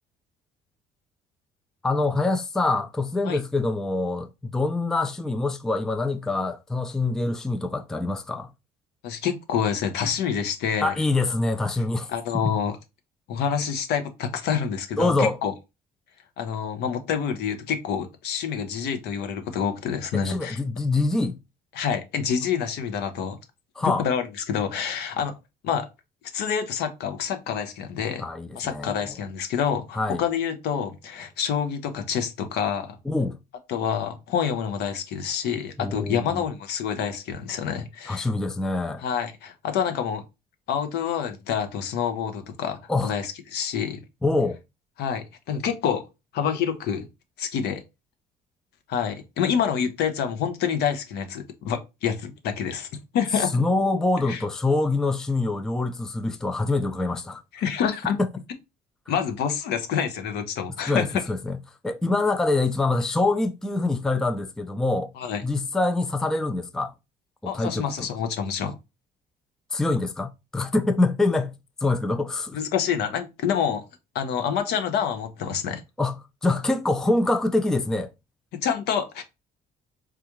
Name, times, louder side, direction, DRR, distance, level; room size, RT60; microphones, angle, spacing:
voice 1, 1.8-8.5 10.8-12.1 12.3-12.6 15.0-15.4 20.1-21.4 23.8-24.0 28.2-29.0 29.9-30.2 33.1-33.4 35.8-36.4 38.1-39.0 42.9-43.1 44.2-44.6 53.4-57.4 60.9-61.6 61.8-65.1 65.4-66.9 67.4-68.1 69.7-71.6 71.8-72.6 76.0-78.1, left 2 dB, 5° left, 0.3 m, -25 dB
voice 2, 9.0-10.9 12.1-12.7 13.3-15.5 16.4-20.6 21.7-23.4 23.8-25.3 25.6-25.9 26.3-28.2 28.6-33.0 33.7-38.3 39.0-40.2 40.7-44.0 45.0-46.0 46.3-47.1 47.4-47.8 48.9-52.9 53.1-53.5 54.3-54.4 57.5-58.2 59.1-61.1 65.2-65.4 67.5-68.8 72.5-73.8 74.1-75.8 78.6-79.2, left 7 dB, 75° left, 0.7 m, -27 dB
3.5 x 2.4 x 2.9 m
cardioid pair, 110°, 17 cm